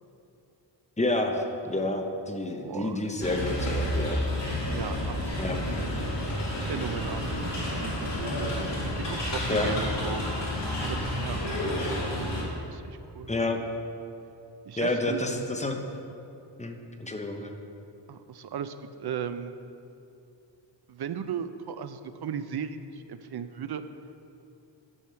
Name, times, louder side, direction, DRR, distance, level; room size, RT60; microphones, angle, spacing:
voice 1, 1.0-4.2 5.4-5.6 9.5-9.7 13.3-13.6 14.8-15.8 16.6-17.5, left 2 dB, 15° left, 3 dB, 0.7 m, -29 dB
voice 2, 2.6-3.0 4.7-5.4 6.7-8.5 9.0-10.2 10.8-11.5 12.0-12.3 12.7-13.3 14.7-15.4 18.1-19.6 20.9-23.8, right 8 dB, 60° right, 10 dB, 0.5 m, -36 dB
sound 1, 3.2-12.4, left 1 dB, 65° left, 2.2 m, -30 dB
10.0 x 4.8 x 6.7 m, 2.7 s
wide cardioid pair, 150°, 45 cm